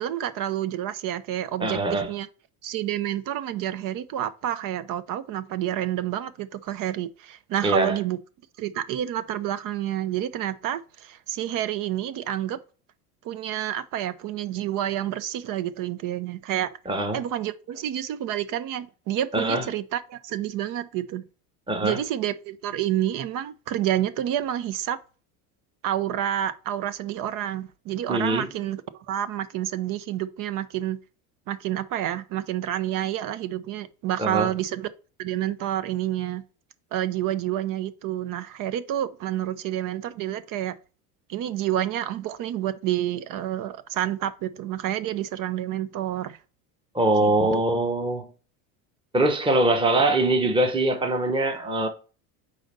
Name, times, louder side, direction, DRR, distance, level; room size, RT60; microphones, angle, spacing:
voice 1, 0.0-2.3 2.6-8.2 8.6-12.6 13.2-16.7 17.1-21.2 21.8-25.0 25.8-28.8 29.1-31.0 31.5-34.9 35.2-36.4 36.9-40.7 41.3-46.4 47.2-47.6, right 12 dB, 45° right, 0.6 m, -29 dB
voice 2, 1.6-2.1 7.6-8.0 16.9-17.2 19.3-19.7 21.7-22.0 28.1-28.5 34.2-34.5 46.9-48.3 49.1-51.9, right 2 dB, 10° right, 1.0 m, -23 dB
4.9 x 4.0 x 5.3 m
supercardioid pair, 95°, 45 cm